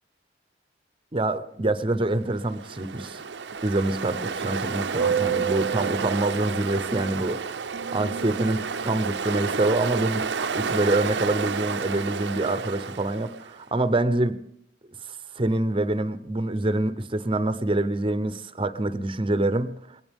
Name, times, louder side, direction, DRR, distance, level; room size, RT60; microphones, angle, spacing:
voice 1, 1.1-3.2 3.6-7.4 7.9-14.4 15.1-19.8, right 2 dB, 30° right, 12 dB, 0.7 m, -26 dB
Ocean, 2.4-13.5, right 5 dB, 85° right, 0.7 m, -29 dB
21.0 x 18.0 x 3.6 m, 0.69 s
head